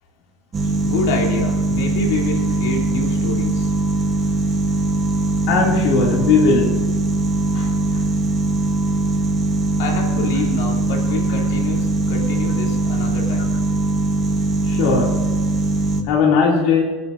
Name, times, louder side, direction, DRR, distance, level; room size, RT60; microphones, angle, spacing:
sound 1, 0.5-16.0, right 2 dB, 20° right, 1.2 m, -21 dB
voice 1, 0.8-3.7 9.8-13.6, left 3 dB, 80° left, 0 dB, 2.8 m, -27 dB
voice 2, 5.5-6.7 7.5-7.7 14.7-15.2 16.1-16.8, left 5 dB, 60° left, -2 dB, 2.4 m, -17 dB
27.0 x 9.7 x 2.6 m, 1.3 s
supercardioid pair, 155°, 0 cm